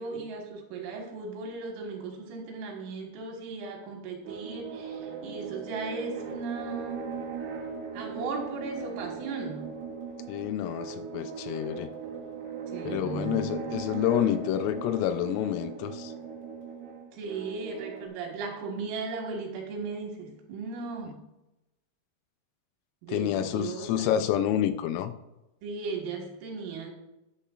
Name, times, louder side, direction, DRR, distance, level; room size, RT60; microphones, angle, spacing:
voice 1, 0.0-7.2 7.9-9.8 12.7-13.7 17.1-21.2 23.0-24.1 25.6-26.9, right 4 dB, 75° right, 1 dB, 4.2 m, -37 dB
sound 1, 4.2-18.1, right 6 dB, 60° right, 3.1 m, -38 dB
voice 2, 10.3-11.9 12.8-16.1 23.1-25.1, left 11 dB, 85° left, 10 dB, 3.3 m, -28 dB
12.0 x 11.5 x 2.5 m, 0.95 s
omnidirectional pair, 5.9 m